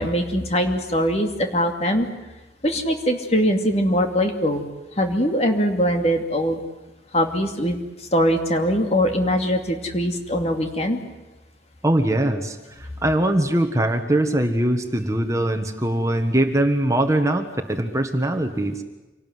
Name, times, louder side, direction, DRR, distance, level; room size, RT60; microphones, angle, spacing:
voice 1, 0.0-2.1 2.6-4.6 5.0-6.6 7.1-11.0, equal, 35° left, 4 dB, 2.7 m, -22 dB
voice 2, 11.8-18.8, right 1 dB, 15° right, 6 dB, 1.5 m, -22 dB
27.0 x 18.5 x 9.5 m, 1.1 s
head